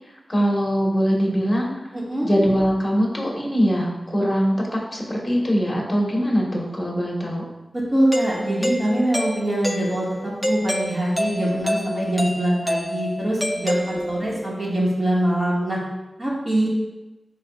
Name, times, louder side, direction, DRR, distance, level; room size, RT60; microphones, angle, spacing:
voice 1, 0.3-1.7 2.2-7.4 13.9-14.1, equal, 20° left, -2 dB, 1.8 m, -22 dB
voice 2, 1.9-2.3 7.9-15.8 16.2-16.7, right 1 dB, 35° right, -5 dB, 2.2 m, -23 dB
Doorbell, 8.1-14.4, equal, ahead, 0.6 m, -27 dB
10.5 x 4.1 x 2.6 m, 1.0 s
wide cardioid pair, 70°, 0 cm